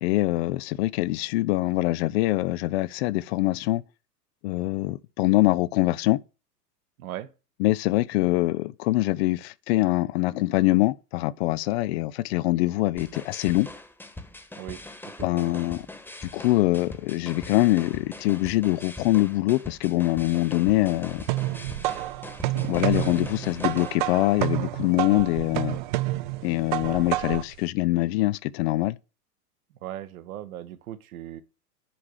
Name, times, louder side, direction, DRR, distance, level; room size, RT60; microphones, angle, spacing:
voice 1, 0.0-3.8 4.4-6.2 7.6-13.7 15.2-15.9 16.2-21.3 22.6-25.8 26.4-29.0, left 19 dB, 40° left, 0.6 m, -24 dB
voice 2, 7.0-7.3 14.5-15.6 29.8-31.4, right 13 dB, 60° right, 1.3 m, -39 dB
sound 1, 13.0-23.9, left 2 dB, 5° left, 1.4 m, -42 dB
sound 2, 20.7-27.6, right 17 dB, 35° right, 0.4 m, -29 dB
10.0 x 4.8 x 6.5 m
figure-of-eight pair, 95°, 48 cm